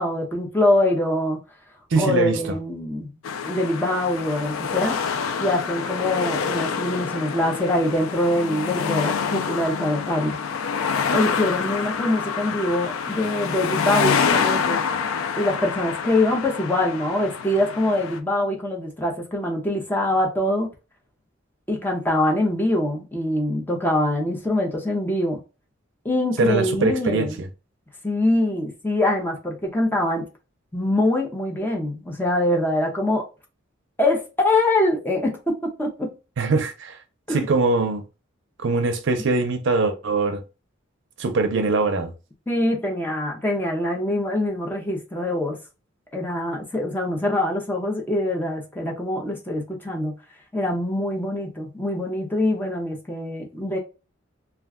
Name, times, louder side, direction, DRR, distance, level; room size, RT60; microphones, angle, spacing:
voice 1, 0.0-1.4 2.0-3.1 3.4-10.4 11.1-14.8 15.4-20.7 21.7-25.4 26.0-27.4 28.0-30.2 30.7-33.2 34.0-36.1 37.3-37.5 42.5-45.6 46.1-50.1 50.5-53.8, left 1 dB, 10° left, 0.5 m, -24 dB
voice 2, 1.9-2.4 26.4-27.3 36.4-37.0 37.3-38.0 38.6-40.4 41.2-42.1, right 3 dB, 60° right, 0.5 m, -22 dB
sound 1, 3.2-18.2, left 6 dB, 85° left, 0.4 m, -27 dB
2.3 x 2.2 x 3.5 m
head